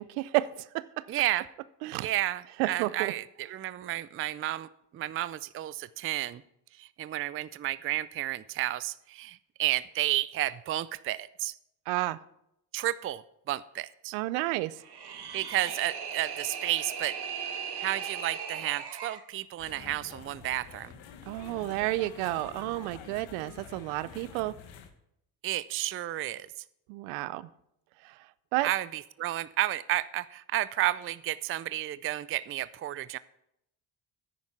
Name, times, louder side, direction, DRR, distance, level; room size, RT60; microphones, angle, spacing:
voice 1, 0.0-1.1 1.8-2.1 2.6-3.1 11.9-12.2 14.1-14.8 21.3-24.5 26.9-27.5 28.0-28.2 28.5-28.7, right 18 dB, 85° right, 18 dB, 0.6 m, -31 dB
voice 2, 1.1-1.4 2.0-4.7 4.9-6.4 6.8-11.5 12.7-14.1 15.3-17.2 17.8-20.9 25.4-26.5 28.6-33.2, right 14 dB, 30° right, 18 dB, 0.4 m, -32 dB
sound 1, 14.8-19.2, right 7 dB, 50° right, 1.8 m, -38 dB
sound 2, 19.6-24.9, left 7 dB, 65° left, 1.4 m, -48 dB
9.9 x 9.5 x 4.6 m, 0.78 s
hypercardioid pair, 60°, 50 cm